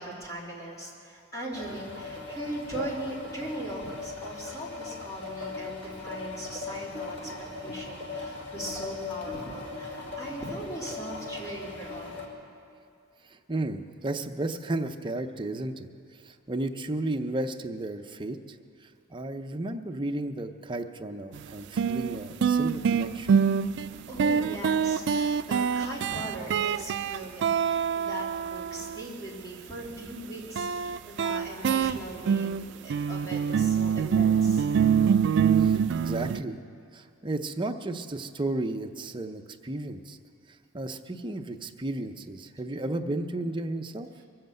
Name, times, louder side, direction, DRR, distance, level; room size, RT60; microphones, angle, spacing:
voice 1, 0.0-7.3 7.6-12.2 23.9-32.5 32.8-34.6, right 1 dB, 15° left, -4 dB, 3.1 m, -39 dB
sound 1, 1.5-12.3, left 3 dB, 60° left, 2.2 m, -38 dB
voice 2, 13.5-15.9 16.2-18.4 19.1-23.4 35.6-36.6 36.9-40.2 40.7-44.1, right 2 dB, 25° right, 5 dB, 0.6 m, -33 dB
sound 2, 21.3-21.4 21.8-29.0 30.6-36.4, right 7 dB, 55° right, 0.3 m, -25 dB
23.0 x 7.9 x 7.7 m, 2.4 s
head